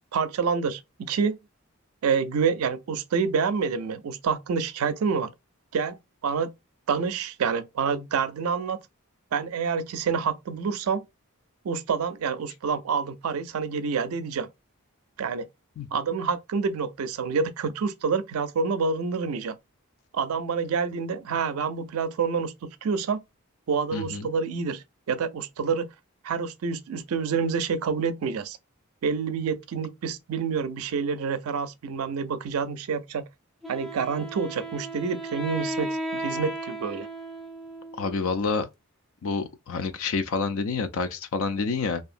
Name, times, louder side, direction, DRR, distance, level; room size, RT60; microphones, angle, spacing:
voice 1, 0.1-1.4 2.0-5.3 5.7-6.5 6.9-8.8 9.3-11.0 11.6-14.5 15.2-15.5 15.9-19.6 20.1-23.2 23.7-25.9 26.2-28.6 29.0-33.2 33.7-37.1, right 5 dB, 80° right, 0.4 m, -27 dB
voice 2, 23.9-24.3 38.0-38.7 39.2-42.0, left 4 dB, 70° left, 0.4 m, -28 dB
Wind instrument woodwind instrument, 33.6-38.4, right 1 dB, ahead, 0.3 m, -35 dB
2.7 x 2.4 x 2.4 m
head